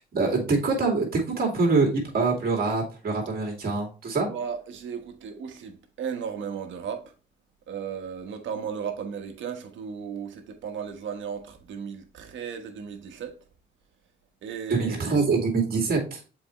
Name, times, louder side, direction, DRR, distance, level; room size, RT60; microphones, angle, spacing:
voice 1, 0.1-4.3 14.7-16.2, right 4 dB, 50° right, 2.4 m, -24 dB
voice 2, 4.3-7.1 7.7-13.4 14.4-15.3, right 7 dB, 70° right, 1.3 m, -35 dB
6.9 x 4.4 x 3.1 m
cardioid pair, 90°, 20 cm